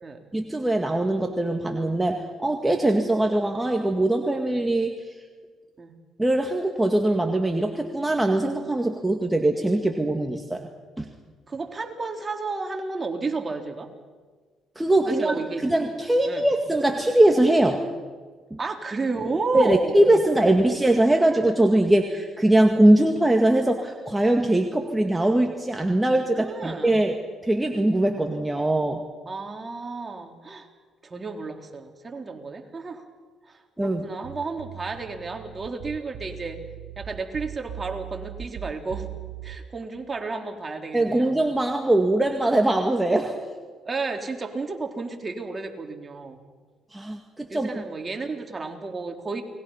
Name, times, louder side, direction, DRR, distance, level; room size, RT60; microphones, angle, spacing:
voice 1, 0.3-5.0 6.2-10.7 11.0-11.1 14.8-15.4 15.6-17.8 18.5-18.6 19.5-27.2 27.4-29.0 33.8-34.1 40.9-43.4 46.9-47.7, right 1 dB, 10° right, 3 dB, 2.1 m, -21 dB
voice 2, 11.5-13.9 15.1-15.7 16.3-16.5 18.6-20.0 26.3-27.0 29.3-30.7 31.0-33.0 33.4-36.6 37.0-39.1 39.4-41.3 43.8-46.4 47.5-49.4, right 3 dB, 30° right, 3 dB, 3.6 m, -32 dB
sound 1, 34.2-39.6, right 13 dB, 75° right, 0.9 m, -39 dB
29.5 x 21.0 x 5.7 m, 1.5 s
supercardioid pair, 65°, 0 cm